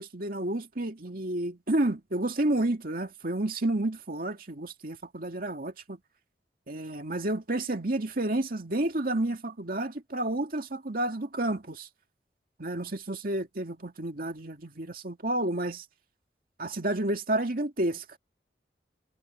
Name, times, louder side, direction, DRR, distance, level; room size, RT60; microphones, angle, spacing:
voice 1, 0.0-6.0 6.7-11.9 12.6-15.8 16.6-18.0, right 1 dB, 55° right, 2.3 m, -30 dB
head